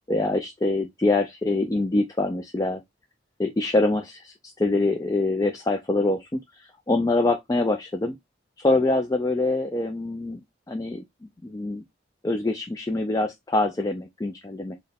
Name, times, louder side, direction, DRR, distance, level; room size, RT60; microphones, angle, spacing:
voice 1, 0.1-2.8 3.4-8.2 8.6-10.4 10.7-11.0 11.4-11.8 12.2-14.7, left 2 dB, 20° left, 0.3 m, -25 dB
4.3 x 2.2 x 3.3 m
head